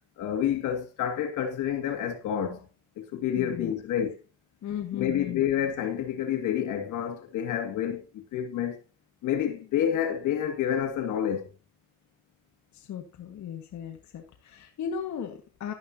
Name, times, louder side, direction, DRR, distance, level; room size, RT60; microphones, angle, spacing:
voice 1, 0.2-2.7 3.0-4.2 4.9-8.8 9.2-11.5, left 9 dB, 90° left, 2.2 m, -29 dB
voice 2, 3.4-3.7 4.6-5.4 12.7-15.7, left 8 dB, 70° left, 1.8 m, -36 dB
12.0 x 10.5 x 2.8 m
cardioid pair, 90°, 30 cm